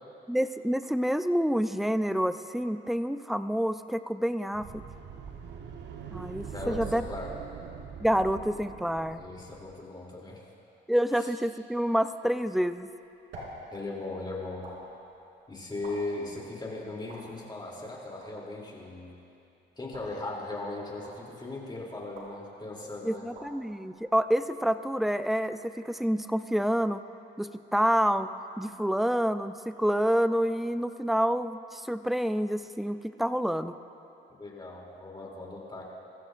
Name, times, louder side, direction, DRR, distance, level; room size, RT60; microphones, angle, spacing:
voice 1, 0.3-4.8 6.1-7.0 8.0-9.2 10.9-12.9 23.0-27.0 27.4-28.3 28.6-33.8, equal, ahead, 11 dB, 0.4 m, -28 dB
sound 1, 4.5-9.8, right 7 dB, 65° right, 1.1 m, -43 dB
voice 2, 6.5-7.3 9.1-10.4 11.1-11.3 13.7-14.7 15.5-19.2 19.8-23.3 34.4-35.8, left 2 dB, 20° left, -3 dB, 2.9 m, -38 dB
sound 2, 12.6-24.8, right 1 dB, 85° right, 3.2 m, -51 dB
21.0 x 15.0 x 2.5 m, 2.8 s
cardioid pair, 90°, 20 cm